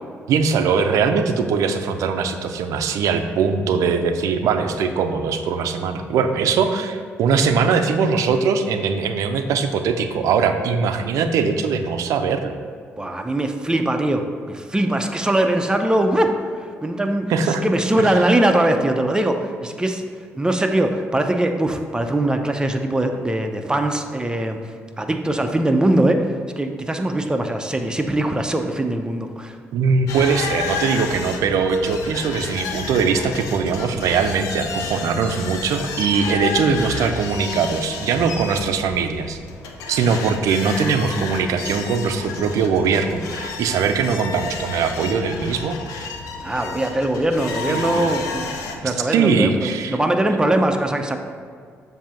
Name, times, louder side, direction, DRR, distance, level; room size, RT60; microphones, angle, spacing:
voice 1, 0.3-12.5 17.3-17.6 18.0-18.1 29.7-39.4 39.9-46.1 47.7-48.1 48.8-50.0, right 5 dB, 80° right, 7 dB, 0.5 m, -21 dB
voice 2, 13.0-20.0 20.3-24.6 25.0-29.6 46.4-51.2, right 1 dB, 15° right, 5 dB, 0.7 m, -21 dB
sound 1, 30.1-48.7, left 4 dB, 90° left, 0.6 m, -31 dB
7.3 x 2.8 x 5.8 m, 2.1 s
supercardioid pair, 65°, 6 cm